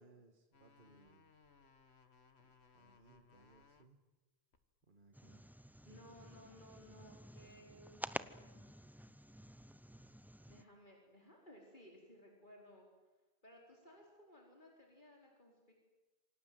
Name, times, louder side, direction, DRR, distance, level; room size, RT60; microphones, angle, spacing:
voice 1, 0.0-1.3 2.7-4.0 4.9-5.4 7.4-7.9, right 3 dB, 55° right, 5 dB, 2.1 m, -66 dB
sound 1, 0.5-3.9 4.5-5.5, left 5 dB, 85° left, 1.9 m, -67 dB
sound 2, 5.1-10.6, equal, ahead, 0.7 m, -50 dB
voice 2, 5.8-8.7 10.5-12.9 13.4-15.7, left 1 dB, 50° left, -1 dB, 4.8 m, -60 dB
28.0 x 25.0 x 7.8 m, 1.2 s
omnidirectional pair, 1.1 m